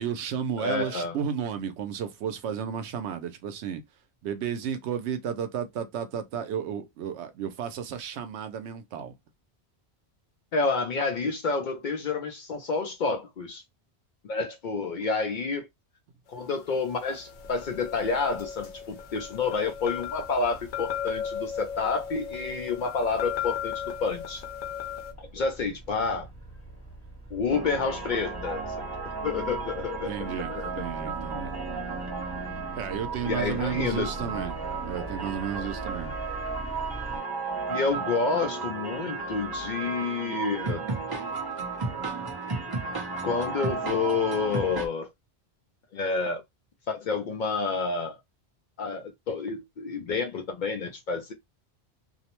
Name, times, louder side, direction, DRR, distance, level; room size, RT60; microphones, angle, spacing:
voice 1, 0.0-3.8 4.2-9.1 30.0-31.5 32.8-34.6 34.8-36.2, right 8 dB, 90° right, 0.9 m, -33 dB
voice 2, 0.6-1.2 10.5-13.6 14.2-15.7 16.3-23.7 24.0-24.4 25.2-26.3 27.3-30.7 33.3-34.3 37.7-40.8 43.2-45.1 45.9-46.4 46.9-48.2 48.8-51.3, left 4 dB, 60° left, 0.5 m, -29 dB
sound 1, 16.8-25.1, left 8 dB, 85° left, 0.9 m, -36 dB
sound 2, 17.4-37.2, right 2 dB, 15° left, 0.8 m, -44 dB
sound 3, 27.5-44.9, right 4 dB, 25° right, 0.6 m, -34 dB
2.5 x 2.0 x 2.9 m
omnidirectional pair, 1.1 m